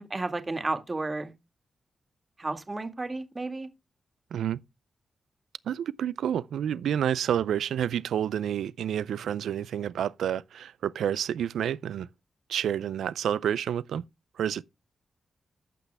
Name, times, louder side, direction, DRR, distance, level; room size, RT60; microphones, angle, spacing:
voice 1, 0.0-1.3 2.4-3.7, right 2 dB, 35° right, 2.0 m, -32 dB
voice 2, 5.7-12.1 12.5-14.0 14.4-14.6, right 9 dB, 85° right, 0.4 m, -29 dB
14.0 x 5.9 x 3.4 m
supercardioid pair, 45°, 0 cm